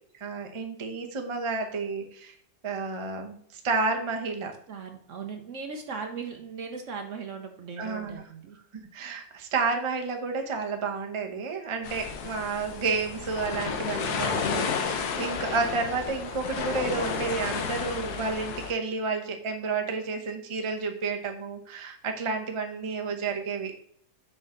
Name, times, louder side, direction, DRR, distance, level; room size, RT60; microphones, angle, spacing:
voice 1, 0.2-2.4 2.6-4.5 7.8-8.3 8.9-23.7, right 4 dB, 35° right, 4 dB, 0.5 m, -31 dB
voice 2, 4.7-8.6, right 5 dB, 60° right, 5 dB, 0.9 m, -38 dB
sound 1, 11.8-18.7, left 6 dB, 65° left, 1.3 m, -32 dB
6.4 x 4.9 x 3.7 m, 0.65 s
omnidirectional pair, 1.8 m